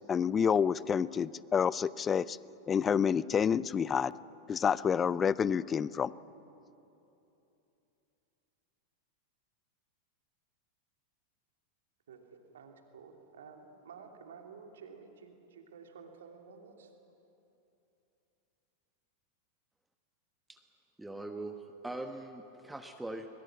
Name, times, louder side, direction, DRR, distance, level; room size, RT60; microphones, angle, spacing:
voice 1, 0.1-2.4 2.7-4.1 4.5-6.1, left 7 dB, 20° left, 21 dB, 0.5 m, -28 dB
voice 2, 12.5-16.9, right 5 dB, 65° right, 3 dB, 2.7 m, -52 dB
voice 3, 21.0-23.3, right 2 dB, 5° right, 6 dB, 1.2 m, -41 dB
22.5 x 22.0 x 7.5 m, 2.9 s
figure-of-eight pair, 90°, 0 cm